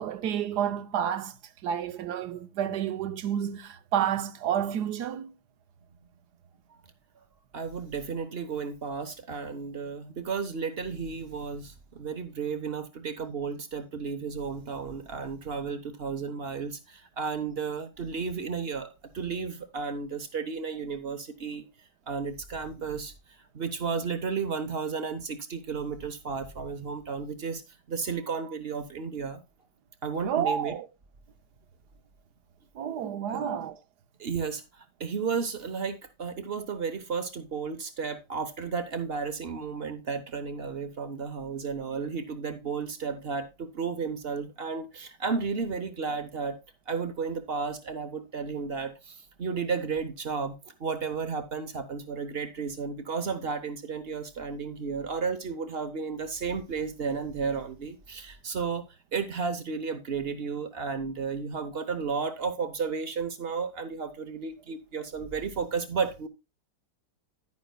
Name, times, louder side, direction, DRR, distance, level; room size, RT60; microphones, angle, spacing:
voice 1, 0.0-1.3 1.6-5.3 30.2-30.9 32.7-33.8, right 9 dB, 75° right, 1.3 m, -30 dB
voice 2, 7.5-21.7 22.1-23.1 23.5-27.6 27.9-29.4 30.0-30.7 33.3-33.5 34.2-46.6 46.9-58.8 59.1-66.3, right 5 dB, 45° right, 0.9 m, -33 dB
10.5 x 9.7 x 2.2 m
omnidirectional pair, 1.8 m